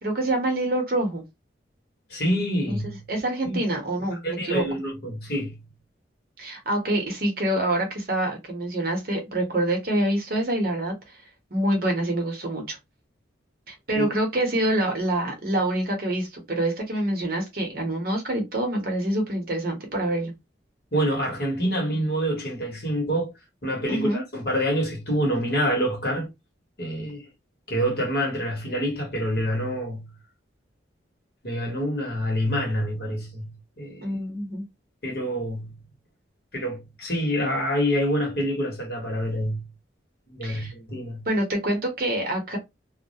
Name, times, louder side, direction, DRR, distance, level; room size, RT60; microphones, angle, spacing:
voice 1, 0.0-1.2 2.7-2.8 3.1-4.6 6.4-11.2 11.5-12.8 13.7-20.3 23.9-24.2 34.0-34.6 40.4-40.7 41.3-42.6, right 1 dB, 50° right, 0.8 m, -26 dB
voice 2, 2.1-3.0 3.4-3.6 4.2-5.6 13.9-14.0 20.9-23.3 23.6-26.3 26.8-27.2 27.7-30.1 31.4-34.2 35.0-35.8 36.5-39.7 40.3-41.3, equal, 55° left, 1.1 m, -27 dB
2.2 x 2.1 x 2.7 m
head